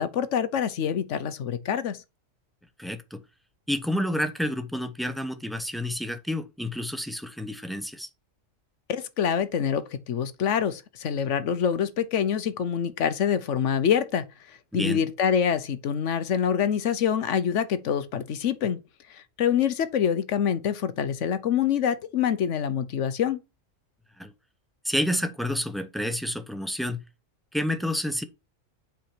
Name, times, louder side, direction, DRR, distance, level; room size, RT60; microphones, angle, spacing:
voice 1, 0.0-2.0 8.9-18.8 19.1-23.4, left 8 dB, 70° left, 1.1 m, -26 dB
voice 2, 2.8-3.2 3.7-8.1 14.7-15.0 24.2-24.3 24.8-27.0 27.5-28.2, left 1 dB, ahead, 0.6 m, -29 dB
7.5 x 5.1 x 4.5 m
omnidirectional pair, 1.4 m